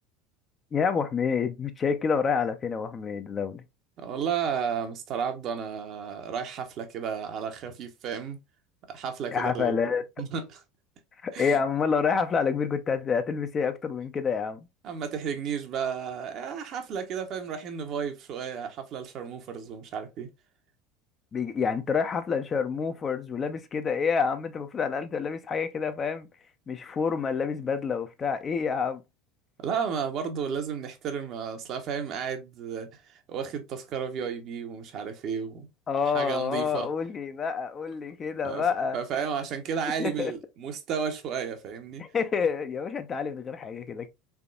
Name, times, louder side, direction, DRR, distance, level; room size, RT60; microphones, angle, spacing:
voice 1, 0.7-3.6 9.3-10.0 11.2-14.6 21.3-26.3 26.7-29.0 35.9-39.0 40.0-40.3 42.0-44.1, left 6 dB, 30° left, 0.5 m, -28 dB
voice 2, 4.0-8.4 8.9-10.6 11.3-11.6 14.8-20.3 29.6-35.7 36.1-36.9 38.4-38.6 38.9-42.1, right 7 dB, 45° right, 0.8 m, -33 dB
3.7 x 3.5 x 2.3 m
figure-of-eight pair, 70°, 0 cm